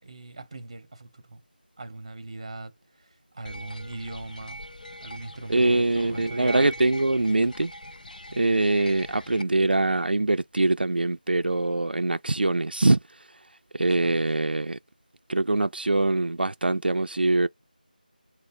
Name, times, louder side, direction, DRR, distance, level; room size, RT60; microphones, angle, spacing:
voice 1, 0.0-1.4 1.8-4.6 5.0-6.8 14.0-14.3, right 2 dB, 35° right, 0.8 m, -40 dB
sound 1, 3.4-9.4, equal, 60° left, 0.4 m, -42 dB
voice 2, 5.5-7.7 8.3-13.0 13.7-14.8 15.3-17.5, right 2 dB, 90° right, 0.4 m, -23 dB
3.2 x 2.0 x 4.0 m
figure-of-eight pair, 170°, 5 cm